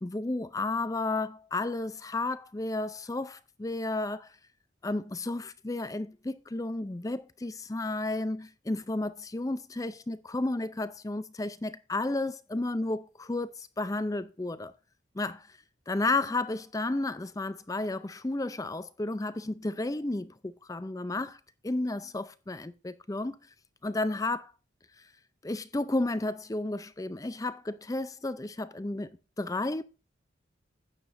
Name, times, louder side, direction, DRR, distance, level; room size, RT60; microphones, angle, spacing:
voice 1, 0.0-4.3 4.8-14.7 15.2-15.5 15.9-23.4 23.8-24.5 25.4-29.1 29.4-29.8, left 2 dB, 15° left, 0.4 m, -32 dB
12.0 x 8.9 x 2.6 m
head